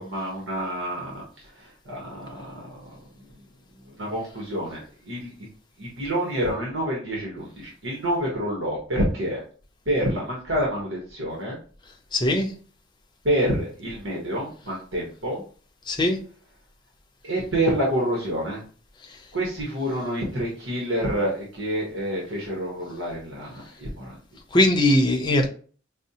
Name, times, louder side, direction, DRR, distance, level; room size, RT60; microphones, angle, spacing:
voice 1, 0.0-2.8 3.1-3.4 3.8-5.5 5.8-9.4 9.9-11.6 13.2-15.4 17.2-18.6 19.3-24.2, right 1 dB, 70° right, 1.0 m, -28 dB
voice 2, 12.1-12.5 15.9-16.2 24.5-25.5, left 1 dB, 25° left, 0.6 m, -20 dB
5.2 x 2.1 x 2.7 m
head